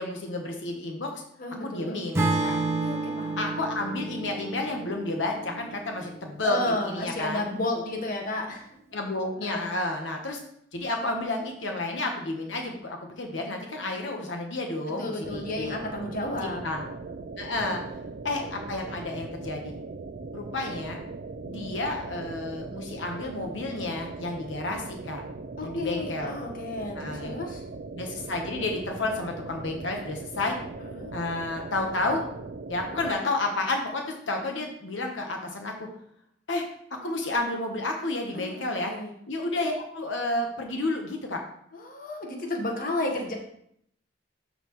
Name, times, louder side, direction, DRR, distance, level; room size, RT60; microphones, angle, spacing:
voice 1, 0.0-1.2 1.6-2.6 3.4-6.6 6.8-7.5 8.9-10.4 10.7-15.8 16.4-16.8 17.4-17.8 18.2-19.7 20.3-21.0 21.5-25.2 25.6-26.4 27.0-27.4 27.9-30.5 31.1-32.2 32.7-35.9 36.5-36.6 37.0-38.9 39.3-41.4, left 2 dB, 80° left, 2 dB, 1.1 m, -31 dB
voice 2, 1.4-2.0 2.8-3.4 6.4-8.7 9.4-9.7 15.0-16.6 17.7-17.8 25.6-27.6 30.8-31.1 38.3-39.1 41.7-43.3, left 1 dB, 50° left, 2 dB, 1.2 m, -32 dB
Acoustic guitar / Strum, 2.1-6.4, right 3 dB, 15° right, 0.8 m, -30 dB
sound 1, 15.2-33.1, right 3 dB, 50° right, 0.4 m, -40 dB
12.5 x 4.2 x 3.1 m, 0.70 s
head